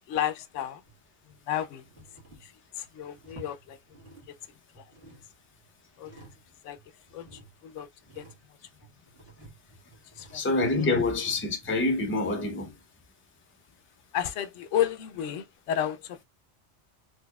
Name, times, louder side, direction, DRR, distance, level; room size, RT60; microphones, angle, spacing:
voice 1, 0.1-0.8 1.5-1.8 2.4-3.8 4.3-4.4 4.8-4.9 6.0-6.1 6.6-6.8 7.1-7.9 8.2-8.3 10.2-10.4 14.1-16.2, left 10 dB, 90° left, 0.9 m, -32 dB
sound 1, 0.9-1.4 1.8-4.4 4.7-6.5 6.8-12.3, right 2 dB, 55° right, 1.7 m, -52 dB
voice 2, 10.3-12.7, left 2 dB, 15° left, 0.5 m, -26 dB
4.0 x 3.1 x 2.2 m
omnidirectional pair, 1.2 m